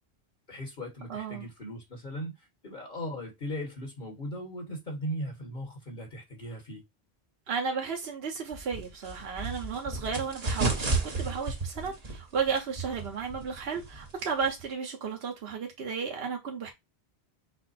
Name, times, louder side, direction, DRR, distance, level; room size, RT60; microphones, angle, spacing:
voice 1, 0.5-6.8, equal, 50° left, 1.6 m, -38 dB
voice 2, 1.1-1.5 7.5-16.7, right 6 dB, 70° right, 1.2 m, -33 dB
sound 1, 8.5-14.7, right 3 dB, 40° right, 1.0 m, -34 dB
6.1 x 2.1 x 4.1 m
omnidirectional pair, 1.1 m